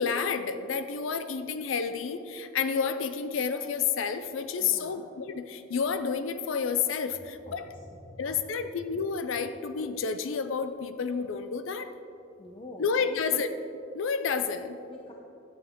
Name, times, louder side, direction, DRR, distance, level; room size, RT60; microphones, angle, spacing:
voice 1, 0.0-7.7 8.2-11.9 12.8-13.5 13.9-14.8, left 6 dB, 70° left, 10 dB, 0.5 m, -30 dB
voice 2, 4.6-5.0 7.5-8.2 12.4-13.2 14.8-15.1, left 1 dB, 25° left, 0 dB, 0.7 m, -46 dB
11.0 x 9.3 x 3.7 m, 2.8 s
head